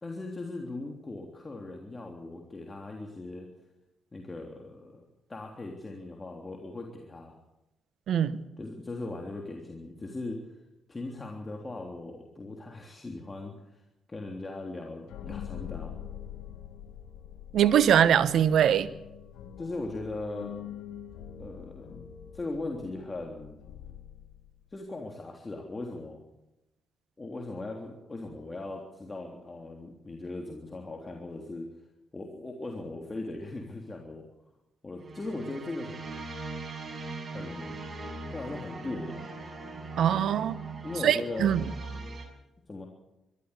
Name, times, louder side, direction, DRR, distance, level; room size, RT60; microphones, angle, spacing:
voice 1, 0.0-3.5 4.1-5.0 5.3-7.3 8.6-10.4 10.9-13.8 14.1-15.9 19.6-20.5 21.4-22.0 22.3-23.6 24.7-26.2 27.2-31.7 32.1-34.3 34.8-36.2 37.3-37.7 38.3-39.2 40.8-41.5 42.7-42.9, left 2 dB, 30° left, 1 dB, 3.4 m, -39 dB
voice 2, 8.1-8.4 17.5-18.9 40.0-40.6 41.0-41.6, right 9 dB, 65° right, 17 dB, 1.0 m, -22 dB
sound 1, 15.1-24.7, left 9 dB, 75° left, 1.8 m, -44 dB
sound 2, 35.0-42.2, right 3 dB, 35° right, 6.6 m, -40 dB
22.5 x 14.0 x 8.4 m, 0.94 s
hypercardioid pair, 45°, 0 cm